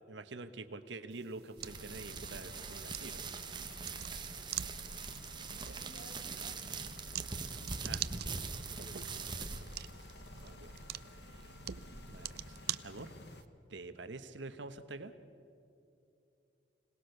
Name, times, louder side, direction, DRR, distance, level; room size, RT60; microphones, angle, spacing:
voice 1, 0.1-3.2 5.7-5.8 7.8-8.0 10.4-10.7 11.3-11.5 12.1-13.1 13.7-15.1, right 3 dB, 75° right, 10 dB, 1.1 m, -46 dB
sound 1, 1.1-13.4, right 11 dB, 55° right, 0.5 m, -46 dB
sound 2, 1.6-13.4, left 2 dB, 60° left, 1.3 m, -54 dB
sound 3, 1.6-12.6, right 4 dB, 25° right, 1.1 m, -44 dB
voice 2, 5.1-7.9 8.7-9.4, left 1 dB, 35° left, 2 dB, 3.3 m, -59 dB
26.0 x 18.5 x 6.7 m, 2.7 s
head